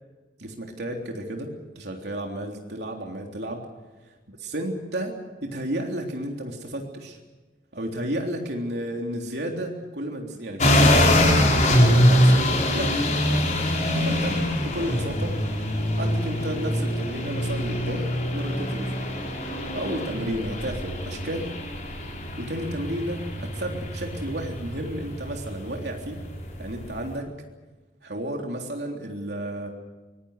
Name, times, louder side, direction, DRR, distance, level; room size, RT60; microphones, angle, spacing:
voice 1, 0.4-3.6 4.4-5.1 5.4-7.2 7.7-12.4 12.7-12.9 14.1-15.3 16.0-19.1 19.7-21.5 22.4-26.2 26.6-27.3 28.0-29.7, right 1 dB, 65° right, 1 dB, 3.5 m, -32 dB
sound 1, 10.6-27.1, left 1 dB, 45° left, 5.3 m, -24 dB
24.5 x 22.0 x 6.6 m, 1.2 s
head